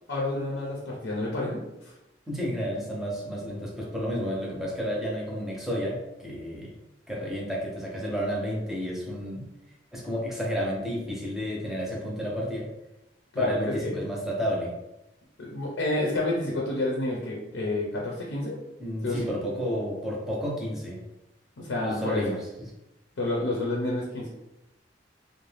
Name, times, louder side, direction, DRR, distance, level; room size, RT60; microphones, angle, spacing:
voice 1, 0.1-1.9 13.3-14.0 15.4-18.6 19.0-19.3 21.6-22.2 23.2-24.3, left 2 dB, 85° left, -2 dB, 0.6 m, -29 dB
voice 2, 2.3-6.7 7.1-9.5 9.9-12.7 13.4-14.7 18.8-21.0 21.8-22.7, equal, ahead, -4 dB, 0.6 m, -31 dB
2.5 x 2.2 x 3.2 m, 0.93 s
head